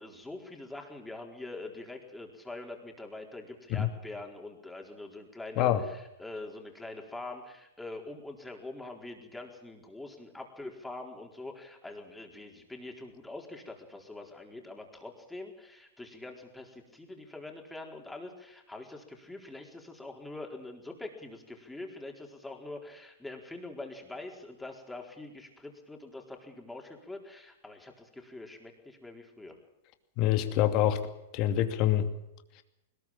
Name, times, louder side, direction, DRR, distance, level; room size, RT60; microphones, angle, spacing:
voice 1, 0.0-29.6, left 2 dB, 5° left, 2 dB, 4.3 m, -44 dB
voice 2, 30.2-31.0 31.3-32.1, left 11 dB, 45° left, 8 dB, 2.5 m, -25 dB
21.0 x 20.0 x 7.4 m, 0.89 s
hypercardioid pair, 110°, 0 cm